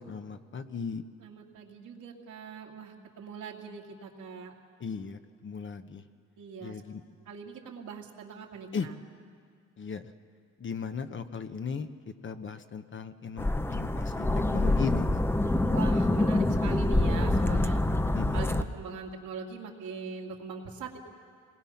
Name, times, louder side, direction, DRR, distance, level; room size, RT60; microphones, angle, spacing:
voice 1, 0.0-1.0 4.8-6.0 6.6-7.0 8.7-8.9 9.8-10.1 10.6-11.9 12.2-15.2 18.1-18.5, left 5 dB, 40° left, 9 dB, 1.1 m, -37 dB
voice 2, 1.2-4.5 6.4-6.8 7.3-8.9 15.7-17.8 18.3-21.0, right 5 dB, 75° right, 0 dB, 2.5 m, -41 dB
sound 1, 13.4-18.6, left 2 dB, 10° left, 0.7 m, -26 dB
26.0 x 20.0 x 5.9 m, 2.1 s
cardioid pair, 90°, 30 cm